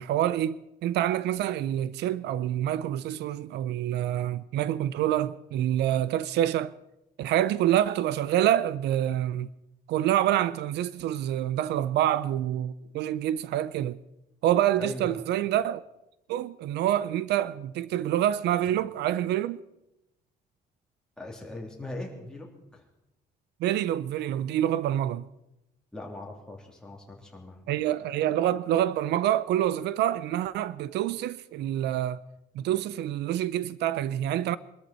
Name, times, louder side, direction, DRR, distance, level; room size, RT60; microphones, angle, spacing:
voice 1, 0.0-6.7 7.2-9.5 9.9-14.0 14.4-15.8 16.3-19.6 23.6-25.3 27.7-32.2 32.5-34.6, right 12 dB, 80° right, 0.6 m, -27 dB
voice 2, 14.8-15.2 21.2-22.8 25.9-27.6, left 2 dB, 5° left, 3.3 m, -40 dB
23.0 x 13.5 x 4.4 m
cardioid pair, 150°, 17 cm